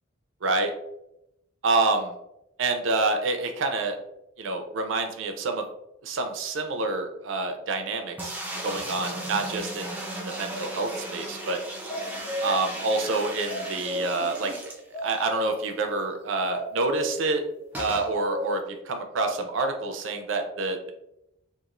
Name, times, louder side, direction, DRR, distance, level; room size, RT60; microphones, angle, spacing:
voice 1, 0.4-0.7 1.6-2.1 2.6-4.0 4.4-5.7 6.0-8.4 8.6-11.6 12.4-17.4 17.8-20.9, right 3 dB, 70° right, 5 dB, 0.5 m, -27 dB
sound 1, 8.2-15.3 15.7-15.8 16.0-16.1 17.7-18.1, right 1 dB, 10° right, 0.3 m, -36 dB
sound 2, 11.9-12.6 13.5-14.2 14.9-15.6 16.1-16.2 16.5-17.2 17.6-18.5, left 1 dB, 35° left, 0.7 m, -33 dB
2.9 x 2.4 x 2.4 m, 0.83 s
head